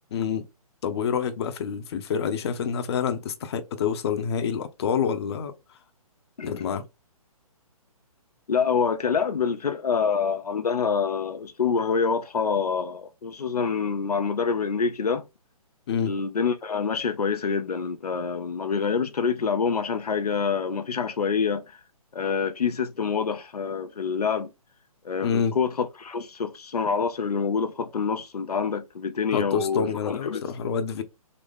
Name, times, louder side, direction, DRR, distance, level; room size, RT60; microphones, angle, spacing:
voice 1, 0.1-0.5 0.8-5.5 6.4-6.8 15.9-16.1 25.2-25.6 29.3-31.0, left 7 dB, 45° left, 0.7 m, -27 dB
voice 2, 8.5-15.2 16.1-21.6 22.1-24.5 25.0-30.4, left 6 dB, 85° left, 0.6 m, -26 dB
3.9 x 3.0 x 3.5 m
hypercardioid pair, 145°, 19 cm